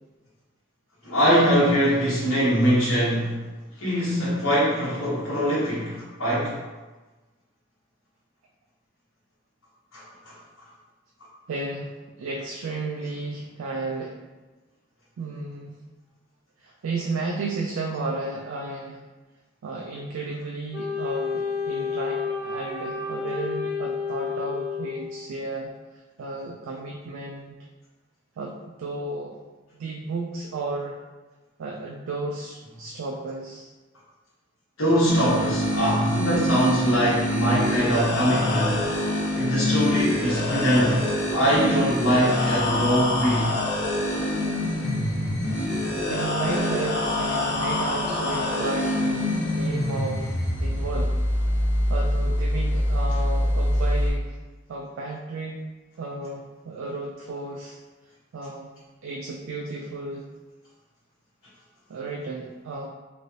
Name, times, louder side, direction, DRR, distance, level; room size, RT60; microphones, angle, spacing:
voice 1, 1.0-3.4 3.8-6.6 9.9-10.3 34.8-38.9 39.3-41.1 41.3-43.5, equal, 85° left, -9 dB, 1.2 m, -22 dB
voice 2, 11.5-14.2 15.2-15.8 16.6-19.0 19.6-25.7 26.2-27.6 28.4-29.4 29.7-31.0 31.6-33.7 46.1-51.2 51.9-54.4 54.7-55.7 56.0-57.8 58.3-58.7 59.0-60.2 61.9-62.9, right 3 dB, 85° right, 0 dB, 0.3 m, -33 dB
Wind instrument woodwind instrument, 20.7-25.3, left 5 dB, 15° right, 0.5 m, -30 dB
sound 1, 35.1-54.1, left 1 dB, 50° left, 0.5 m, -25 dB
3.2 x 2.5 x 2.7 m, 1.2 s
head